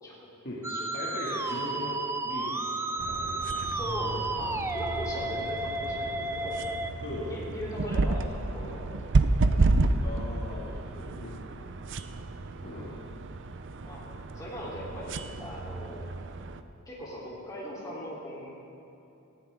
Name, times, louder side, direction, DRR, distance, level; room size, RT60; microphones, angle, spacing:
Musical instrument, 0.6-6.9, right 2 dB, 10° right, 0.5 m, -33 dB
voice 1, 0.9-3.5 7.0-7.3 10.0-11.4 12.6-13.0 15.9-16.0, left 1 dB, 45° left, -5 dB, 2.3 m, -39 dB
sound 1, 3.0-16.6, right 2 dB, 55° right, 0.6 m, -31 dB
voice 2, 3.6-6.6 7.3-9.3 9.5-9.7 13.8-14.1 14.3-16.1 16.9-18.5, equal, 15° left, -6 dB, 3.2 m, -39 dB
sound 2, 3.8-12.2, equal, 75° left, 3.3 m, -48 dB
19.0 x 14.0 x 3.6 m, 2.9 s
head